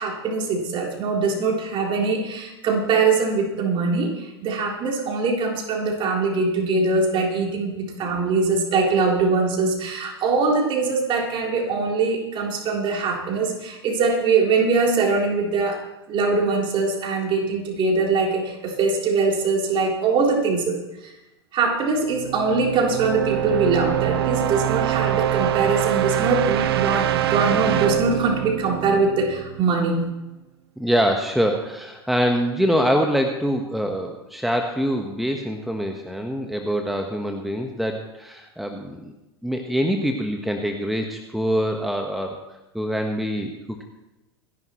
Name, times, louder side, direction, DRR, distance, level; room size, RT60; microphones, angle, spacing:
voice 1, 0.0-15.8 16.1-21.1 21.5-30.1, right 4 dB, 40° right, 0 dB, 3.7 m, -22 dB
sound 1, 22.0-29.8, right 12 dB, 65° right, 0.8 m, -24 dB
voice 2, 30.8-39.1 39.4-42.4 42.7-43.8, equal, ahead, 3 dB, 1.3 m, -24 dB
27.0 x 11.0 x 3.1 m, 1.0 s
figure-of-eight pair, 80°, 14 cm